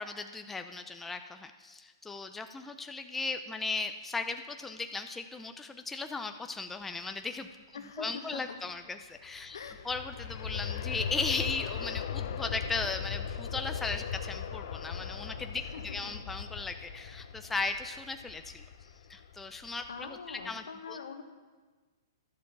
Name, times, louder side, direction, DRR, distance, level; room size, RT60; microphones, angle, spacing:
voice 1, 0.0-9.6 9.8-18.7 19.1-21.0, left 4 dB, 10° left, 6 dB, 0.6 m, -37 dB
voice 2, 7.7-8.6 9.5-9.9 15.7-16.1 19.9-21.2, left 5 dB, 80° left, 6 dB, 1.5 m, -43 dB
Aircraft, 9.2-20.0 20.4-20.5, left 7 dB, 60° left, 0.9 m, -39 dB
12.0 x 8.3 x 7.4 m, 1.4 s
hypercardioid pair, 135°, 2 cm